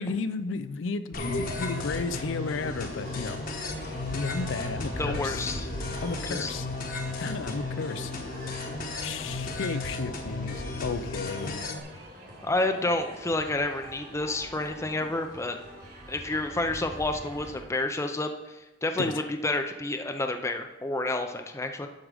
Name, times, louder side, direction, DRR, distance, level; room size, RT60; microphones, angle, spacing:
voice 1, 0.0-3.4 4.1-5.5 6.0-6.7 7.2-8.1 9.0-11.6 19.0-19.3, left 4 dB, 80° left, 11 dB, 0.5 m, -33 dB
sound 1, 1.1-11.8, left 3 dB, 50° left, 1.1 m, -35 dB
sound 2, 1.1-17.6, equal, 55° right, 3.3 m, -42 dB
voice 2, 5.0-5.7 6.3-6.5 12.4-15.6 16.1-21.9, left 2 dB, 15° left, 5 dB, 0.5 m, -29 dB
11.0 x 5.0 x 4.9 m, 1.1 s
head